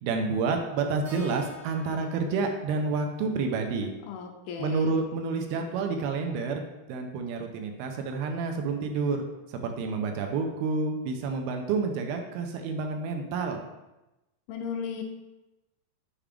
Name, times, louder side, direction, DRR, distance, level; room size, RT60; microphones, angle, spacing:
voice 1, 0.0-3.9 4.6-9.3 9.6-13.6, right 4 dB, 85° right, 4 dB, 2.6 m, -29 dB
Keyboard (musical), 1.0-5.3, right 1 dB, 55° right, 1.4 m, -51 dB
voice 2, 4.0-5.0 14.5-15.0, left 6 dB, 80° left, 3 dB, 2.6 m, -35 dB
7.2 x 4.9 x 3.5 m, 0.99 s
omnidirectional pair, 4.5 m